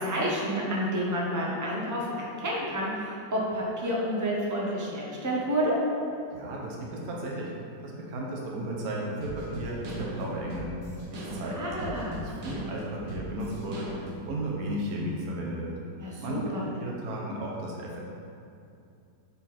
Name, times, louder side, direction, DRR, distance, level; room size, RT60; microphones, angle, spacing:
voice 1, 0.0-5.7 11.5-12.2 16.0-16.7, equal, 15° right, -4 dB, 0.7 m, -30 dB
voice 2, 6.3-7.5 7.8-10.7 11.1-11.9 12.2-13.9 14.2-15.8 16.2-16.4 16.7-18.0, right 1 dB, 60° right, -3 dB, 1.3 m, -34 dB
sound 1, 9.2-14.3, equal, 85° right, 1.8 m, -38 dB
7.4 x 4.0 x 4.3 m, 2.6 s
omnidirectional pair, 1.9 m